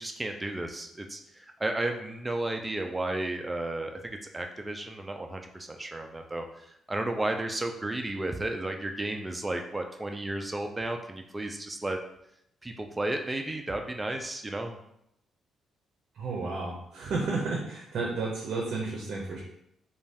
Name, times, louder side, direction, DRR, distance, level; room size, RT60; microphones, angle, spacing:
voice 1, 0.0-12.0 12.6-14.8, right 2 dB, 15° right, 4 dB, 0.3 m, -33 dB
voice 2, 16.1-19.4, right 3 dB, 65° right, -2 dB, 0.6 m, -32 dB
2.5 x 2.2 x 3.3 m, 0.76 s
cardioid pair, 90°, 0 cm